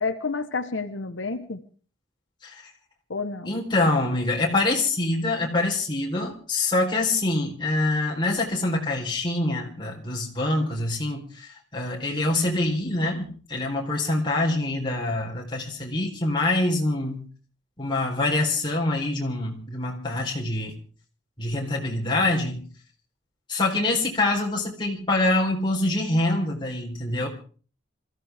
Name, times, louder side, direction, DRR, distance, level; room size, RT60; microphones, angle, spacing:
voice 1, 0.0-1.6 3.1-3.5, left 4 dB, 85° left, 8 dB, 1.1 m, -29 dB
voice 2, 3.5-17.3 17.8-20.8 21.4-22.6 23.5-27.3, left 2 dB, 25° left, -1 dB, 4.0 m, -25 dB
26.0 x 15.0 x 3.6 m, 0.40 s
head